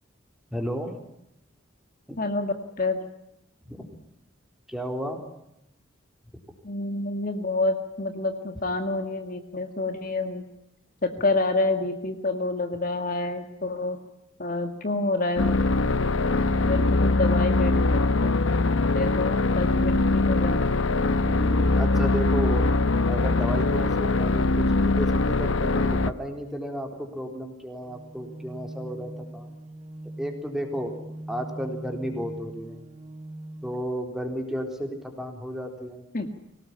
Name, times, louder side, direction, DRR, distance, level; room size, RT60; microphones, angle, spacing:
voice 1, 0.5-1.0 2.1-2.2 3.6-3.9 4.7-5.2 21.2-22.7 23.1-29.6 30.2-30.9 31.3-32.8 33.6-36.0, equal, ahead, 3 dB, 4.0 m, -33 dB
voice 2, 2.2-3.0 6.6-10.4 11.0-14.0 14.4-15.6 16.6-18.4 18.9-20.7 36.1-36.3, left 2 dB, 45° left, 6 dB, 2.0 m, -28 dB
sound 1, 15.4-26.1, left 3 dB, 75° left, 1.0 m, -22 dB
sound 2, 27.8-33.8, right 1 dB, 35° right, 2.1 m, -41 dB
24.5 x 18.5 x 9.9 m, 0.83 s
head